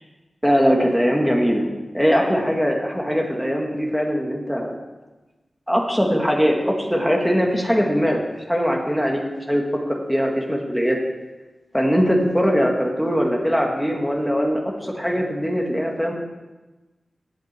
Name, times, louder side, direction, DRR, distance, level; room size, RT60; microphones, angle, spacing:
voice 1, 0.4-1.7 1.9-4.8 5.7-9.2 9.5-11.0 11.7-16.1, equal, ahead, 0 dB, 2.0 m, -21 dB
19.0 x 7.8 x 4.5 m, 1.2 s
wide cardioid pair, 130°, 0 cm